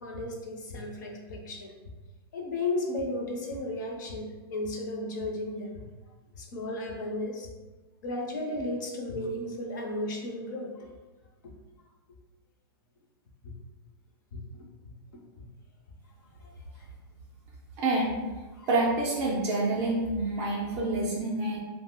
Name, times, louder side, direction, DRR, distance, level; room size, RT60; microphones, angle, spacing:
voice 1, 0.0-1.7 2.3-5.8 6.4-7.5 8.0-10.7 13.4-13.5 14.3-14.4 14.9-15.0 15.4-15.5 16.4-16.5 16.8-16.9 18.6-18.7, left 2 dB, 45° left, 0 dB, 0.5 m, -34 dB
voice 2, 17.8-18.2 18.7-21.6, right 2 dB, 20° right, -4 dB, 0.3 m, -27 dB
2.6 x 2.0 x 3.6 m, 1.2 s
hypercardioid pair, 170°, 13 cm